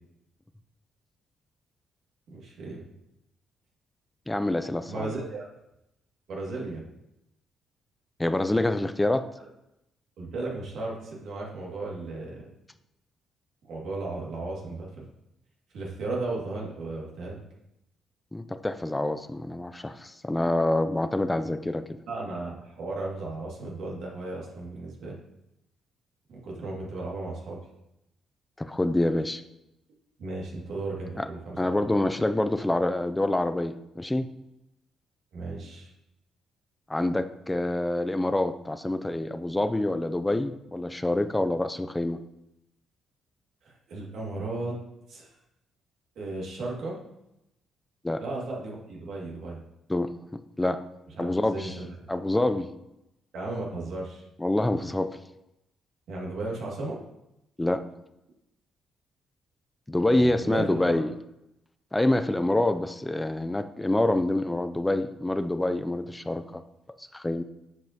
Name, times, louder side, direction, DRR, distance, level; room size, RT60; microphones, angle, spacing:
voice 1, 2.3-2.8 4.9-5.5 6.3-6.8 10.2-12.5 13.6-15.1 15.7-17.4 22.1-25.1 26.3-27.6 30.2-31.9 35.3-35.9 43.6-44.8 45.1-45.3 46.2-47.0 48.2-49.6 51.2-52.0 53.3-54.2 56.1-57.0 60.2-61.0, right 2 dB, 75° right, -3 dB, 2.2 m, -35 dB
voice 2, 4.3-5.1 8.2-9.3 18.3-21.8 28.6-29.4 31.2-31.3 31.6-34.3 36.9-42.2 48.0-48.2 49.9-50.8 51.2-51.8 52.1-52.7 54.4-55.1 57.6-57.8 59.9-61.1 61.9-66.6 67.0-67.4, left 1 dB, 10° left, 11 dB, 0.5 m, -26 dB
9.2 x 5.3 x 2.9 m, 0.86 s
cardioid pair, 90°, 0 cm